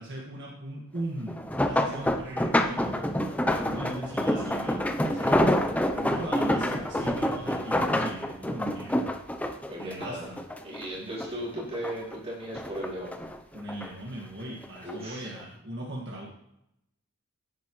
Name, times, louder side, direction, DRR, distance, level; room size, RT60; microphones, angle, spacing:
voice 1, 0.0-3.0 3.5-5.6 5.9-9.0 9.8-10.4 11.0-11.4 13.5-16.3, right 1 dB, 50° right, -4 dB, 1.7 m, -39 dB
sound 1, 1.3-10.9 11.2-12.2 12.5-13.9 14.6-14.9 15.3-15.4, left 1 dB, 5° left, 0.5 m, -27 dB
voice 2, 9.7-10.3 10.6-13.1 14.8-15.3, equal, 25° right, -7 dB, 3.8 m, -36 dB
16.0 x 8.5 x 3.1 m, 0.80 s
head